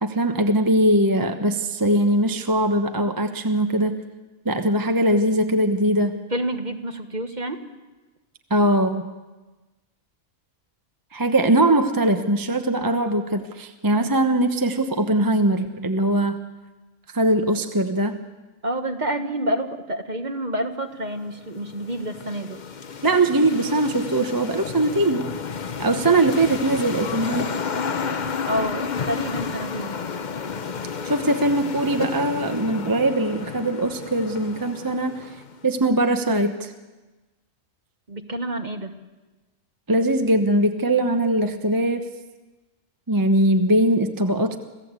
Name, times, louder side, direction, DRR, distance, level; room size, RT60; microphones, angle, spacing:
voice 1, 0.0-4.0 4.4-6.2 8.5-9.1 11.1-16.4 17.1-18.2 23.0-25.2 25.8-27.5 31.0-35.4 35.6-36.7 39.9-42.1 43.1-44.6, right 1 dB, 15° right, 6 dB, 1.0 m, -21 dB
voice 2, 6.3-7.6 18.6-22.6 28.5-29.9 38.1-38.9, right 1 dB, 35° right, 7 dB, 1.5 m, -28 dB
sound 1, 21.2-35.7, left 5 dB, 40° left, 0.8 m, -31 dB
27.0 x 16.5 x 8.3 m, 1.2 s
omnidirectional pair, 1.4 m